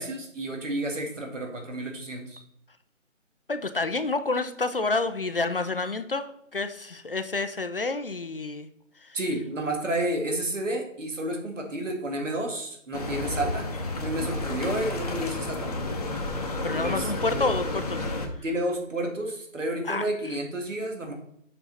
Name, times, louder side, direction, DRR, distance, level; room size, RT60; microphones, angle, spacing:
voice 1, 0.0-2.4 9.1-13.7 14.0-15.7 16.8-17.5 18.4-21.1, right 1 dB, 70° right, 3 dB, 2.2 m, -31 dB
voice 2, 3.5-8.7 9.0-9.2 16.6-18.4 19.8-20.4, left 3 dB, 45° left, 10 dB, 0.5 m, -29 dB
sound 1, 12.9-18.3, left 2 dB, 30° left, 0.9 m, -31 dB
7.2 x 5.4 x 4.1 m, 0.72 s
figure-of-eight pair, 165°, 39 cm